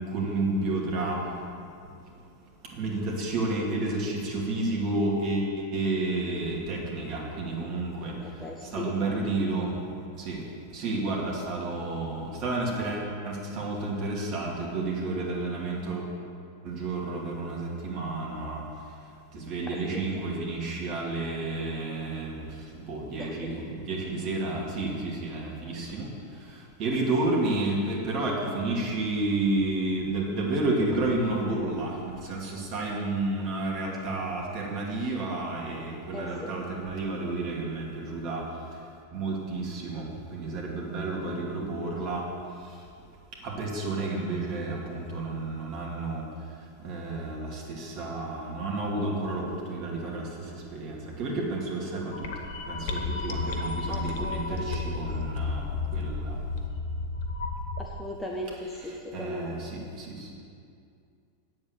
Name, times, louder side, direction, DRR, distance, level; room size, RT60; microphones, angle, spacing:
voice 1, 0.0-1.7 2.1-2.2 2.6-16.1 16.6-42.3 42.5-42.8 43.4-52.3 52.7-56.4 58.7-60.3, right 2 dB, 40° right, -2 dB, 2.5 m, -31 dB
voice 2, 8.2-8.9 20.1-20.2 23.2-23.4 36.1-36.3 53.9-54.8 57.8-59.6, left 1 dB, 5° left, -2 dB, 1.1 m, -37 dB
sound 1, 52.1-57.8, left 4 dB, 55° left, 1.1 m, -32 dB
8.7 x 7.7 x 8.2 m, 2.4 s
figure-of-eight pair, 90°, 0 cm